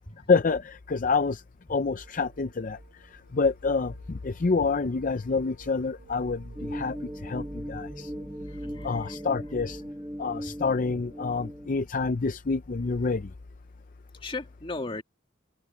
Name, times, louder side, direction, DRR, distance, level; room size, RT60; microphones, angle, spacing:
voice 1, 0.3-1.4 1.7-2.8 3.3-7.0 7.2-8.1 8.8-9.8 10.2-13.3, left 4 dB, 40° left, 0.5 m, -27 dB
sound 1, 1.7-9.9, right 1 dB, 70° right, 1.8 m, -49 dB
sound 2, 6.6-11.7, equal, 10° right, 1.2 m, -38 dB
voice 2, 8.5-9.2 10.5-10.6 14.2-15.0, left 3 dB, 25° left, 1.9 m, -37 dB
open air
head